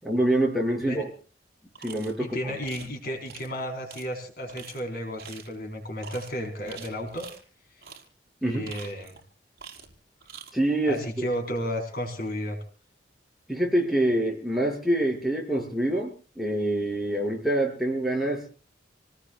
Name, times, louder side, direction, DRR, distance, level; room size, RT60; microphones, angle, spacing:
voice 1, 0.0-1.1 1.8-2.5 8.4-8.7 10.5-11.3 13.5-18.5, right 1 dB, ahead, -1 dB, 6.4 m, -26 dB
sound 1, 1.8-2.1 2.6-2.9 3.3-3.5 3.9-4.0 4.5-4.8 5.2-5.6 6.0-6.3 6.7-7.4 7.8-8.1 8.5-9.2 9.6-9.9 10.2-10.5, right 6 dB, 55° right, 5.0 m, -45 dB
voice 2, 2.2-7.3 8.4-9.2 10.9-12.6, equal, 55° left, 3 dB, 4.5 m, -33 dB
29.0 x 19.0 x 2.4 m, 0.40 s
head